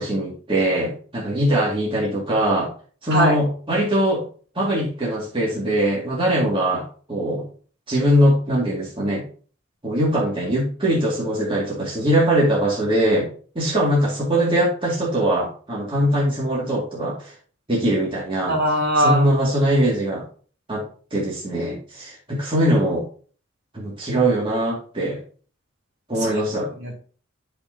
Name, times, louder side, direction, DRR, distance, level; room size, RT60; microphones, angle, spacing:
voice 1, 0.0-2.7 3.0-4.2 4.5-7.4 7.9-9.2 9.8-17.3 17.7-18.6 19.0-20.2 20.7-20.8 21.1-23.0 23.7-25.2 26.1-26.7, right 1 dB, 25° right, -6 dB, 2.3 m, -21 dB
voice 2, 18.5-19.3 26.2-26.3 26.8-26.9, equal, 50° right, -3 dB, 2.8 m, -20 dB
7.9 x 6.9 x 2.8 m, 0.41 s
head